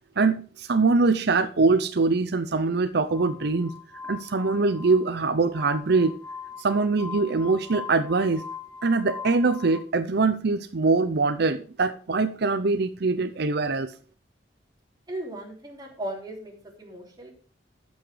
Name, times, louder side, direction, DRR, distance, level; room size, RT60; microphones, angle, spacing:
voice 1, 0.2-3.7 4.0-6.2 6.6-8.4 8.8-13.9, right 3 dB, 60° right, 10 dB, 0.7 m, -23 dB
Glass, 3.1-9.8, left 6 dB, 10° left, 1.5 m, -41 dB
voice 2, 15.1-17.3, right 1 dB, 20° right, -1 dB, 3.2 m, -37 dB
12.5 x 6.4 x 5.0 m, 0.40 s
head